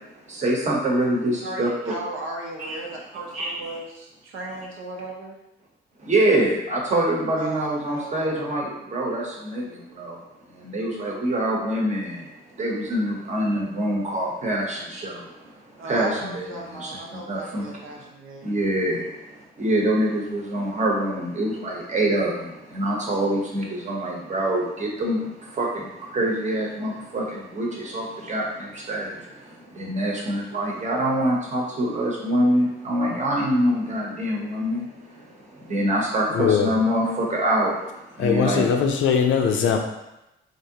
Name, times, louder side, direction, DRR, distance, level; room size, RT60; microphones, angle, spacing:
voice 1, 0.3-1.9 2.6-2.8 3.1-3.6 6.0-10.2 10.5-15.5 15.8-18.0 18.4-38.7, right 1 dB, 35° right, -2 dB, 0.9 m, -25 dB
voice 2, 1.4-5.4 7.4-8.6 15.8-18.4, right 2 dB, 80° right, -1 dB, 0.8 m, -36 dB
voice 3, 36.3-36.7 38.2-39.8, left 7 dB, 75° left, 3 dB, 0.5 m, -20 dB
3.2 x 2.6 x 2.7 m, 0.92 s
cardioid pair, 90°, 20 cm